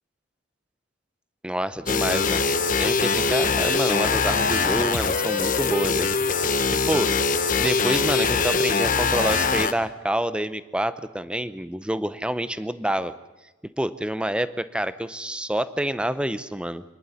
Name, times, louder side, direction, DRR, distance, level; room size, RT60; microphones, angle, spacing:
voice 1, 1.4-2.4 2.8-6.1 6.7-7.1 7.6-13.1 13.8-16.8, right 1 dB, 5° right, 13 dB, 0.7 m, -27 dB
sound 1, 1.9-9.7, left 4 dB, 45° left, 1.1 m, -22 dB
25.5 x 11.0 x 9.8 m, 1.1 s
head